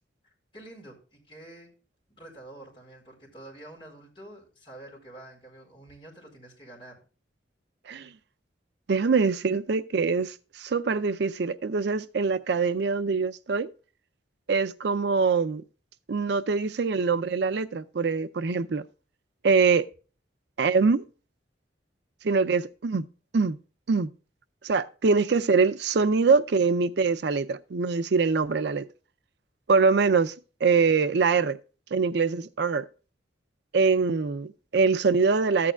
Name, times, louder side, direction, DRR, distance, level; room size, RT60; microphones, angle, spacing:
voice 1, 0.5-1.7 2.2-6.9, right 1 dB, 30° left, 4.4 m, -47 dB
voice 2, 8.9-13.7 14.5-15.6 16.1-18.8 19.4-19.9 20.6-21.0 22.2-23.1 23.3-23.6 23.9-24.1 24.6-28.9 29.7-30.3 30.6-31.6 31.9-32.8 33.7-35.7, right 4 dB, 65° right, 0.5 m, -24 dB
14.0 x 8.6 x 2.3 m
head